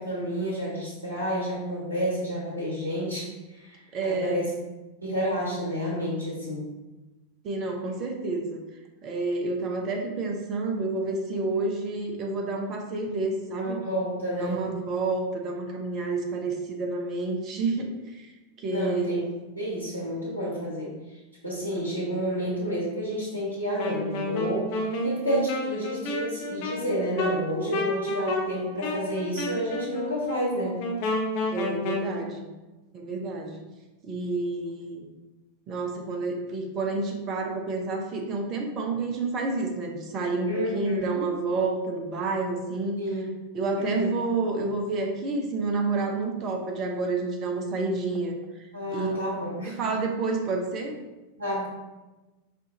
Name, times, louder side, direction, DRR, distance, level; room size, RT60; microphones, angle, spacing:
voice 1, 0.0-4.5 5.0-6.7 13.5-14.6 18.7-19.3 19.5-21.2 21.4-24.7 25.0-30.8 40.5-41.3 43.0-43.5 43.7-44.1 48.7-49.8 51.4-51.7, equal, 85° left, -6 dB, 1.3 m, -30 dB
voice 2, 3.9-4.4 7.4-8.6 9.0-13.8 14.4-18.3 18.6-19.2 31.5-32.5 32.9-33.6 34.0-35.1 35.7-43.0 43.5-48.3 48.9-49.1 49.8-51.0, right 3 dB, 35° right, 2 dB, 0.7 m, -29 dB
Wind instrument woodwind instrument, 23.8-32.1, left 1 dB, 45° left, 0.8 m, -30 dB
4.6 x 2.5 x 3.9 m, 1.1 s
figure-of-eight pair, 90°, 0 cm